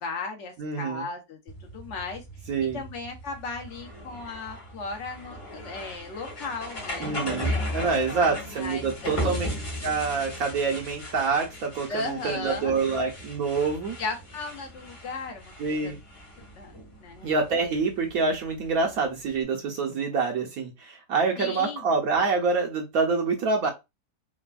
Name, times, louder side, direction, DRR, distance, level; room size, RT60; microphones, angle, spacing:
voice 1, 0.0-2.2 2.7-7.2 7.5-9.5 11.9-12.7 14.0-15.9 16.6-17.3 21.4-21.8 23.6-23.7, left 3 dB, 60° left, 0.8 m, -36 dB
voice 2, 0.6-1.1 2.5-2.8 7.0-9.5 9.8-14.0 15.6-16.0 17.2-23.7, right 4 dB, 65° right, 1.0 m, -26 dB
sound 1, 1.5-19.4, left 1 dB, 30° left, 0.6 m, -37 dB
3.3 x 2.2 x 2.3 m
omnidirectional pair, 1.8 m